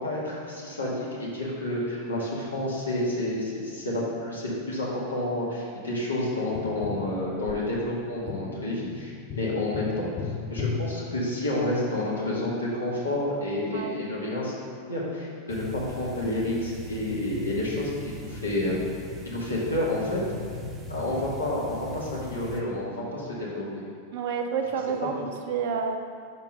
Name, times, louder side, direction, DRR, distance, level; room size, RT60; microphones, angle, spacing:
voice 1, 0.0-10.1 10.5-18.8 19.2-20.2 20.9-23.6, left 1 dB, 75° left, -6 dB, 1.5 m, -29 dB
Tap, 6.6-11.8 14.4-14.5, left 6 dB, 30° left, 0.7 m, -36 dB
voice 2, 13.7-14.0 24.1-26.0, right 6 dB, 50° right, 5 dB, 0.6 m, -29 dB
sound 1, 15.5-22.6, left 1 dB, 15° right, 0.8 m, -39 dB
5.3 x 4.5 x 5.3 m, 2.2 s
figure-of-eight pair, 90°, 0 cm